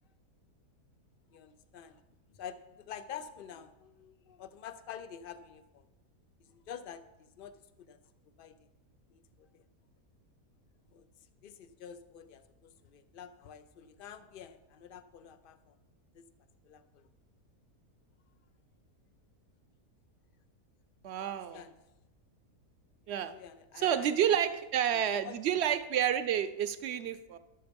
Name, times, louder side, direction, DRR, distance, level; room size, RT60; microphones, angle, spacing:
voice 1, 1.3-2.0 2.4-5.8 6.5-7.0 7.4-7.6 7.9-8.0 8.4-8.6 9.1-9.6 10.9-11.1 11.4-15.7 16.1-16.2 16.6-17.1 21.2-21.7 23.2-24.6 24.9-25.4, left 8 dB, 85° left, 10 dB, 0.4 m, -48 dB
voice 2, 21.0-21.6 23.1-23.4 23.8-27.4, right 9 dB, 60° right, 10 dB, 0.7 m, -30 dB
12.0 x 7.0 x 5.1 m, 1.0 s
omnidirectional pair, 1.6 m